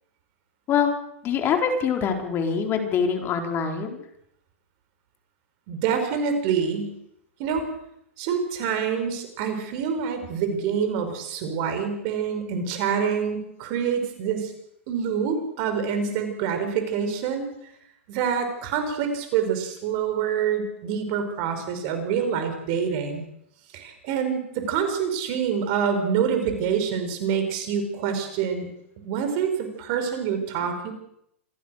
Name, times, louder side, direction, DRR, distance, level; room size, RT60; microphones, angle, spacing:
voice 1, 1.2-4.0, left 6 dB, 35° left, 4 dB, 4.2 m, -24 dB
voice 2, 5.7-6.9 7.4-7.7 8.2-14.5 14.9-17.4 18.1-23.2 23.7-28.7 29.0-30.9, right 7 dB, 50° right, 7 dB, 5.5 m, -26 dB
27.0 x 16.5 x 6.6 m, 0.75 s
hypercardioid pair, 105°, 7 cm